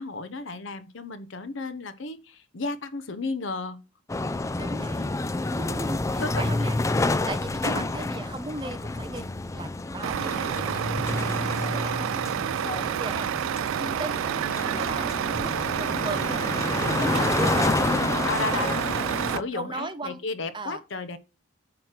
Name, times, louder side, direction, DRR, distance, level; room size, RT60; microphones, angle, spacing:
voice 1, 0.0-3.8 6.2-6.7 7.6-7.9 17.0-17.3 18.2-18.8 19.2-21.2, left 3 dB, 70° left, 0.8 m, -33 dB
sound 1, 4.1-19.4, left 2 dB, 15° left, 0.3 m, -29 dB
voice 2, 4.6-5.1 5.5-6.8 7.3-14.3 14.7-18.6 19.3-20.2 20.5-20.8, right 2 dB, 25° right, 0.7 m, -37 dB
Truck, 10.0-19.4, right 10 dB, 80° right, 0.3 m, -29 dB
8.9 x 3.2 x 5.8 m
head